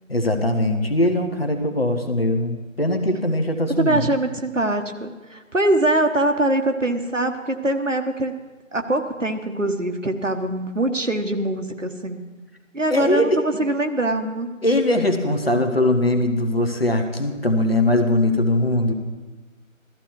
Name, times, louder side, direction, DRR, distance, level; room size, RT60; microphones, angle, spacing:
voice 1, 0.1-4.1 12.9-13.4 14.6-18.9, left 1 dB, 45° left, 4 dB, 1.4 m, -21 dB
voice 2, 3.8-8.3 8.7-12.2 12.7-14.5, right 1 dB, 65° right, 5 dB, 1.3 m, -23 dB
15.0 x 14.0 x 4.7 m, 1.2 s
figure-of-eight pair, 170°, 41 cm